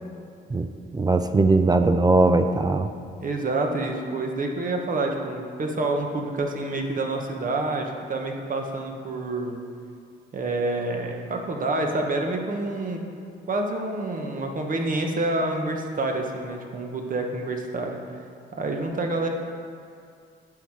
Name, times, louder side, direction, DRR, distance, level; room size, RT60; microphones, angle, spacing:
voice 1, 0.9-2.9, right 2 dB, 20° right, 8 dB, 0.4 m, -20 dB
voice 2, 2.8-9.5 10.3-13.0 13.5-18.0 18.6-19.3, right 2 dB, 45° right, 2 dB, 1.2 m, -28 dB
9.6 x 5.7 x 4.8 m, 2.4 s
cardioid pair, 90°, 20 cm